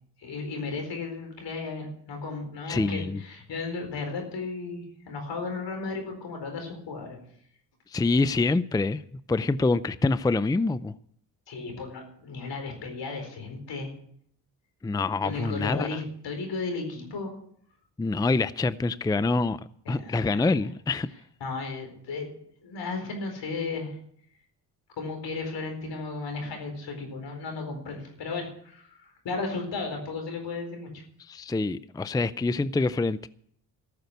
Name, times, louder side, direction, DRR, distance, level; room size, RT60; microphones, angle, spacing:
voice 1, 0.2-7.2 11.5-13.9 15.2-17.3 19.9-20.4 21.4-22.3 22.6-24.0 25.0-31.0, left 3 dB, 75° left, 4.5 m, -35 dB
voice 2, 2.7-3.2 7.9-9.0 9.3-10.9 14.8-16.0 18.0-19.6 19.9-21.1 31.3-33.3, left 3 dB, 10° left, 0.5 m, -26 dB
14.0 x 6.8 x 9.3 m
cardioid pair, 60°, 43 cm